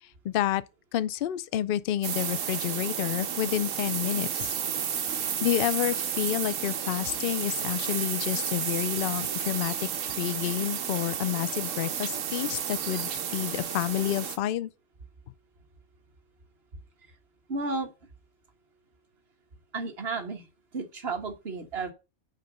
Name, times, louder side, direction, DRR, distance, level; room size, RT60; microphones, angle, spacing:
voice 1, 0.2-0.6 0.9-4.5 5.0-9.9 10.2-14.7, left 12 dB, 70° left, 0.5 m, -29 dB
sound 1, 2.0-14.4, right 8 dB, 65° right, 1.2 m, -32 dB
voice 2, 17.5-17.9 19.7-20.5 20.7-21.9, right 3 dB, 45° right, 1.6 m, -32 dB
6.6 x 5.3 x 6.5 m
omnidirectional pair, 1.5 m